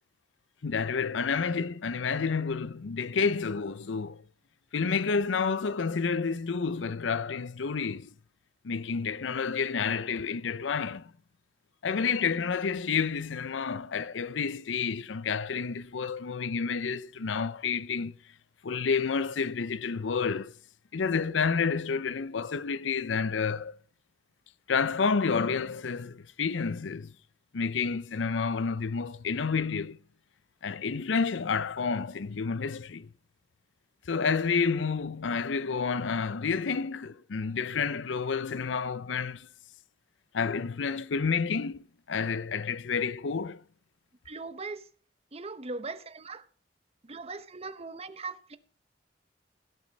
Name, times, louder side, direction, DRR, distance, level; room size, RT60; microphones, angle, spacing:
voice 1, 0.6-4.2 4.7-8.1 8.6-11.1 11.8-18.2 18.6-20.5 20.9-23.7 24.7-27.1 27.5-30.0 30.6-33.1 34.1-39.5 40.3-43.6, left 5 dB, 85° left, 0.6 m, -29 dB
voice 2, 44.2-44.9 45.3-46.4 47.0-48.6, right 3 dB, 35° right, 0.9 m, -39 dB
17.0 x 7.3 x 4.1 m
head